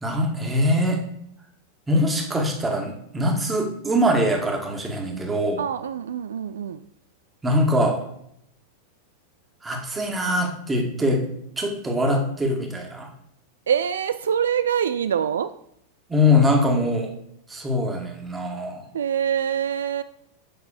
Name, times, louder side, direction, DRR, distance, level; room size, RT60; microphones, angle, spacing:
voice 1, 0.0-1.0 1.9-5.6 7.4-8.1 9.6-11.3 11.6-13.1 16.1-17.2 17.5-18.9, left 1 dB, 10° right, 1 dB, 1.9 m, -23 dB
voice 2, 5.6-6.9 13.7-15.5 18.9-20.0, right 8 dB, 65° right, 12 dB, 0.3 m, -24 dB
7.7 x 6.0 x 5.0 m, 0.74 s
figure-of-eight pair, 90°, 0 cm